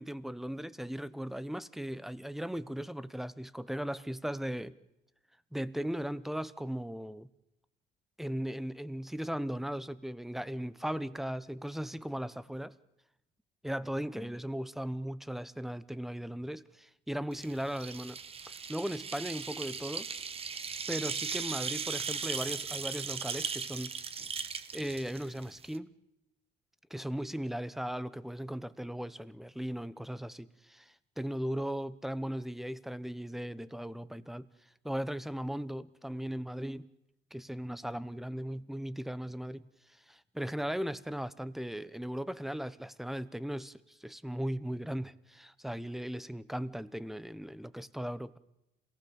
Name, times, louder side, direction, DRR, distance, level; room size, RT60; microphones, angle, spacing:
voice 1, 0.0-4.7 5.5-7.3 8.2-12.7 13.6-18.2 18.5-20.1 20.9-23.9 24.7-25.9 26.9-34.5 34.8-36.9 37.3-39.6 39.9-48.4, equal, ahead, 0.9 m, -37 dB
sound 1, 17.3-25.8, right 6 dB, 35° right, 1.3 m, -38 dB
27.5 x 18.5 x 7.2 m
cardioid pair, 110°, 17 cm